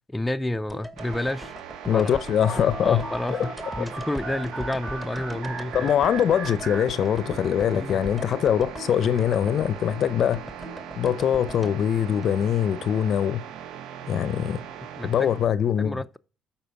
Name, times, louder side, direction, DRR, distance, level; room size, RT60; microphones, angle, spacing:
voice 1, 0.1-1.5 1.9-2.2 2.8-5.9 7.8-8.0 15.0-15.3 15.8-16.2, left 1 dB, 10° left, 0.4 m, -30 dB
sound 1, 0.7-12.9 13.1-13.2, equal, 10° right, 1.1 m, -41 dB
sound 2, 1.0-15.5, right 9 dB, 75° right, 0.5 m, -40 dB
voice 2, 1.9-3.0 3.3-3.5 5.7-10.4 11.0-13.4 14.1-14.6 15.0-16.0, left 9 dB, 60° left, 0.5 m, -23 dB
sound 3, 2.4-7.5, right 2 dB, 40° right, 1.2 m, -37 dB
11.0 x 4.4 x 4.6 m
supercardioid pair, 80°, 0 cm